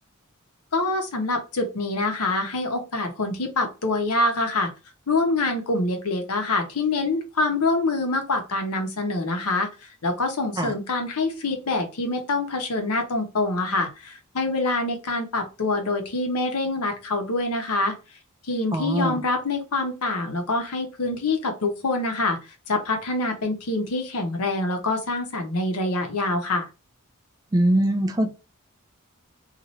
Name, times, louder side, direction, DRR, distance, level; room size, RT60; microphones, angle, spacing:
voice 1, 0.7-4.7 5.1-17.9 18.5-22.4 22.7-26.7, left 2 dB, 85° left, 0.9 m, -25 dB
voice 2, 18.7-19.2 27.5-28.3, right 1 dB, 15° right, 0.4 m, -22 dB
2.7 x 2.5 x 3.0 m
head